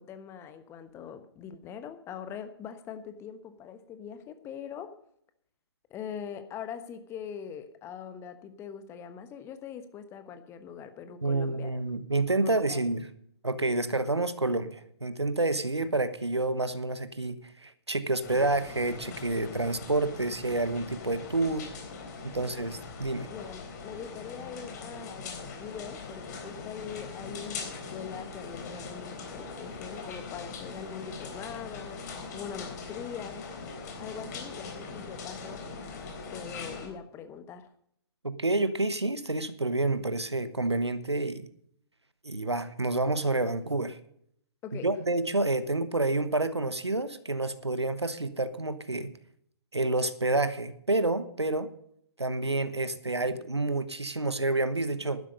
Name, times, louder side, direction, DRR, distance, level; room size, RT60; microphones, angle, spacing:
voice 1, 0.0-4.9 5.9-11.7 12.4-12.9 22.6-22.7 23.3-32.0 32.3-33.5 34.0-35.7 36.3-37.7 44.6-45.0, left 7 dB, 20° left, 10 dB, 1.2 m, -42 dB
voice 2, 11.2-13.1 13.4-21.7 22.2-23.3 38.2-41.5 42.2-44.0 44.8-49.1 49.7-51.7 52.2-55.2, right 2 dB, 90° right, 13 dB, 1.1 m, -29 dB
sound 1, 18.2-36.9, left 4 dB, 40° left, 3.8 m, -41 dB
12.0 x 11.0 x 5.2 m, 0.68 s
figure-of-eight pair, 125°, 14 cm